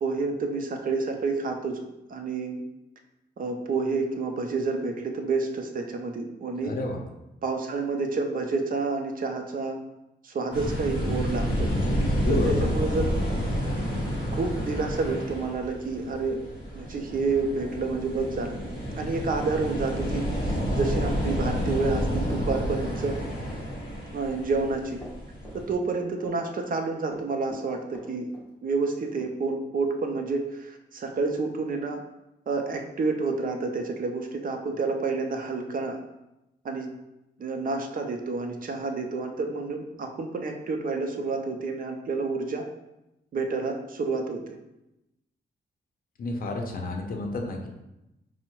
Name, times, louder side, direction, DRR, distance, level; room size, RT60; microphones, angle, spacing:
voice 1, 0.0-1.8 2.1-2.6 3.4-6.8 7.4-9.8 10.2-11.7 12.1-13.1 14.3-16.4 16.7-18.6 19.0-23.2 24.1-25.0 25.5-28.3 28.6-32.0 32.5-36.0 36.6-36.9 37.4-42.7 43.3-44.4, right 3 dB, 50° right, 4 dB, 0.5 m, -29 dB
voice 2, 6.6-7.0 12.1-12.7 46.2-47.7, left 2 dB, 50° left, 2 dB, 0.6 m, -30 dB
sound 1, 10.5-25.7, equal, 25° left, 1.5 m, -29 dB
Run, 24.6-26.0 26.3-26.8 27.1-28.5 28.8-28.9 29.2-29.3, equal, 10° left, 0.9 m, -45 dB
4.5 x 2.1 x 4.4 m, 0.93 s
wide cardioid pair, 165°, 18 cm